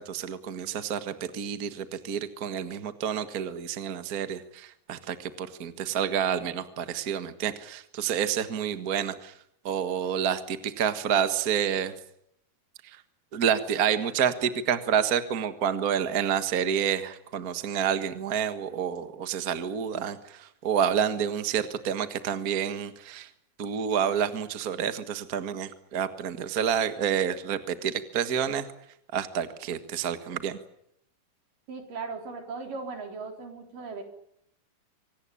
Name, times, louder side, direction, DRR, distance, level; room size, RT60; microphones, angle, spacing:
voice 1, 0.0-9.3 9.6-11.9 13.3-23.3 23.6-28.7 29.1-30.6, right 8 dB, 40° right, 10 dB, 1.4 m, -29 dB
voice 2, 31.7-34.0, right 4 dB, 85° right, 4 dB, 5.5 m, -37 dB
25.0 x 18.5 x 9.9 m, 0.74 s
omnidirectional pair, 3.7 m